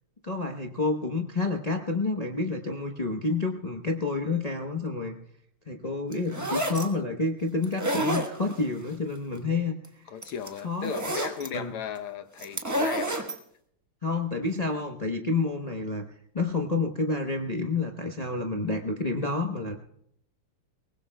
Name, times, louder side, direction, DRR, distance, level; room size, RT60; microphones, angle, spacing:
voice 1, 0.2-5.2 5.7-9.7 10.6-10.9 11.5-11.7 14.0-16.0 16.3-19.7, left 3 dB, 50° left, 0.4 m, -29 dB
sound 1, 6.1-6.9 7.6-8.7 9.8-9.9 10.2-11.5 12.4-13.4, right 1 dB, 15° right, 0.6 m, -29 dB
voice 2, 10.1-13.2, left 8 dB, 80° left, 1.8 m, -36 dB
23.0 x 20.0 x 2.3 m
omnidirectional pair, 2.4 m